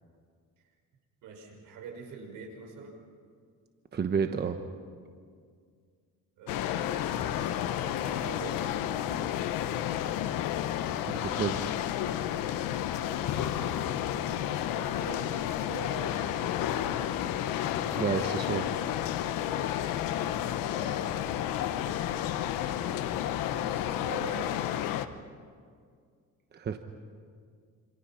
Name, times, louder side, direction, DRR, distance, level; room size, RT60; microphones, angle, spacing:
voice 1, 1.2-3.0 6.4-9.5 13.6-14.0 14.8-17.1 20.7-21.6 23.5-24.9, right 4 dB, 75° right, 2 dB, 5.5 m, -45 dB
voice 2, 3.9-4.6 11.1-11.8 17.9-18.7 26.5-26.8, right 6 dB, 30° right, 6 dB, 1.1 m, -30 dB
sound 1, 6.5-25.1, left 11 dB, 90° left, 1.1 m, -31 dB
sound 2, 13.2-20.3, left 7 dB, 65° left, 1.7 m, -43 dB
27.5 x 27.5 x 5.8 m, 2.1 s
cardioid pair, 135°, 33 cm